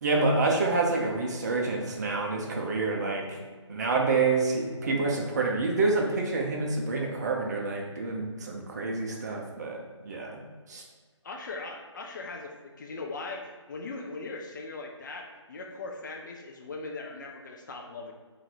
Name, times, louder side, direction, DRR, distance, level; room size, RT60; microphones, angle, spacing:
voice 1, 0.0-3.4 3.7-10.4 10.7-10.8, right 3 dB, 35° right, 0 dB, 0.7 m, -28 dB
voice 2, 11.2-18.1, left 3 dB, 40° left, 1 dB, 0.5 m, -39 dB
3.7 x 2.7 x 4.4 m, 1.4 s
figure-of-eight pair, 145°, 16 cm